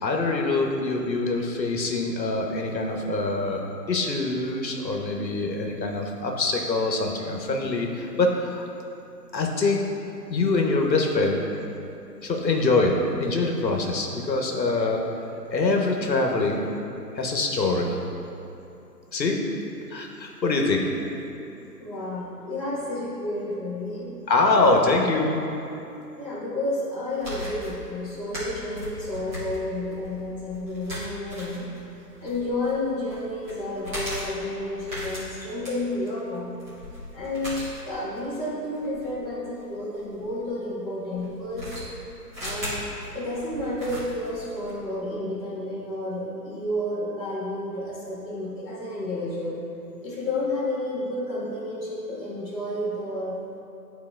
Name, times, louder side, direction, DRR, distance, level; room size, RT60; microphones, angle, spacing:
voice 1, 0.0-3.6 3.9-8.6 9.3-9.8 10.3-11.4 12.2-15.0 15.5-16.6 17.1-18.0 19.1-19.4 19.9-21.1 24.3-25.4, left 3 dB, 90° left, 1 dB, 1.0 m, -24 dB
voice 2, 21.8-24.1 26.2-31.7 32.2-36.5 37.1-41.8 42.4-49.6 50.0-53.3, left 1 dB, 10° left, -11 dB, 0.9 m, -31 dB
sound 1, 27.1-40.3 41.2-44.8, left 1 dB, 10° right, 1.3 m, -38 dB
10.5 x 4.1 x 2.4 m, 2.9 s
figure-of-eight pair, 140°, 50 cm